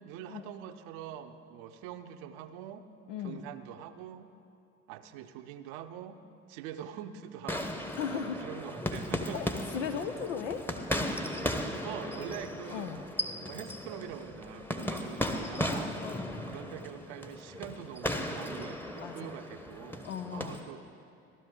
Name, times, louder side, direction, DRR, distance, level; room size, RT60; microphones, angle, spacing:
voice 1, 0.0-2.8 3.2-4.3 4.9-6.2 6.5-7.8 8.1-9.4 9.9-10.0 11.8-12.9 13.4-16.0 16.5-20.8, right 10 dB, 70° right, 9 dB, 0.7 m, -44 dB
voice 2, 3.1-3.5 7.9-8.5 9.3-9.5 9.7-10.7 12.7-13.0 16.0-16.6 19.0-19.3 20.0-20.6, left 7 dB, 85° left, 7 dB, 0.6 m, -37 dB
sound 1, 7.5-20.6, left 1 dB, 5° left, 1.0 m, -36 dB
15.0 x 12.0 x 3.7 m, 2.6 s
hypercardioid pair, 60°, 36 cm